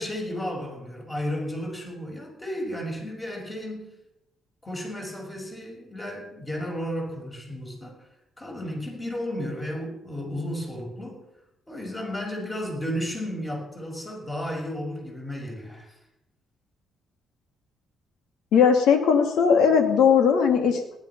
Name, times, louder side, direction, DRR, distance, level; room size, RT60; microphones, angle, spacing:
voice 1, 0.0-4.0 4.6-8.0 8.4-11.2 11.7-16.0, equal, 20° left, 0 dB, 6.0 m, -33 dB
voice 2, 18.5-21.0, left 6 dB, 85° left, 5 dB, 2.1 m, -19 dB
18.5 x 11.5 x 5.9 m, 0.86 s
cardioid pair, 90°, 0 cm